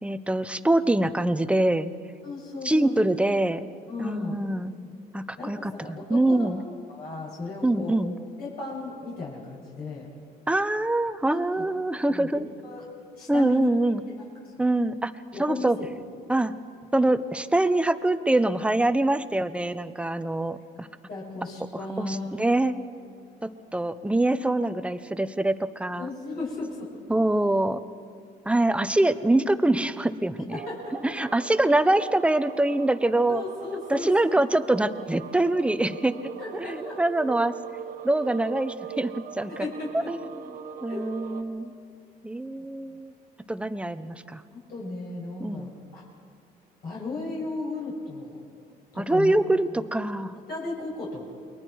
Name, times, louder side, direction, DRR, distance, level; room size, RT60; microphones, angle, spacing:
voice 1, 0.0-1.9 2.6-3.7 4.0-4.8 5.1-6.6 7.6-8.1 10.5-12.5 13.3-14.0 14.6-15.1 15.4-15.8 16.3-16.5 16.9-20.9 22.0-22.8 23.4-26.1 27.1-27.8 28.5-30.6 31.0-33.4 33.9-36.1 36.5-37.5 38.0-39.5 40.1-40.2 40.8-41.7 42.2-43.1 43.5-44.4 45.4-45.7 49.0-50.3, right 1 dB, 5° right, 12 dB, 0.8 m, -24 dB
voice 2, 2.2-2.9 3.9-4.4 5.4-6.5 6.9-8.0 8.4-10.1 11.3-11.6 12.1-12.8 13.1-13.7 14.1-14.5 15.3-15.9 21.1-22.3 26.0-26.9 30.7-30.8 33.3-34.1 36.4-37.0 39.5-40.1 40.9-41.0 44.5-46.0 46.8-48.4 48.9-49.3 50.5-51.3, left 3 dB, 65° left, -5 dB, 7.0 m, -35 dB
sound 1, 30.5-41.4, right 7 dB, 55° right, 1.5 m, -41 dB
29.0 x 22.5 x 4.7 m, 2.3 s
cardioid pair, 110°, 17 cm